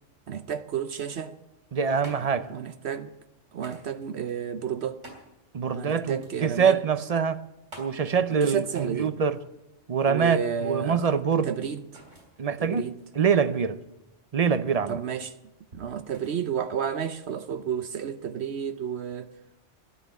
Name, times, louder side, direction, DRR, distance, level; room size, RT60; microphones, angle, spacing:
voice 1, 0.3-1.3 2.5-3.1 3.5-5.0 5.7-6.8 8.4-9.1 10.0-11.1 11.4-11.8 12.6-13.0 14.9-15.4 15.7-19.3, right 8 dB, 65° right, 0.9 m, -31 dB
sound 1, 1.6-18.1, right 1 dB, 80° right, 3.7 m, -52 dB
voice 2, 1.7-2.5 5.5-7.4 7.8-9.4 9.9-11.5 12.4-12.9 13.2-13.8 14.3-15.0, right 6 dB, 40° right, 0.6 m, -24 dB
12.5 x 10.5 x 9.5 m
omnidirectional pair, 1.3 m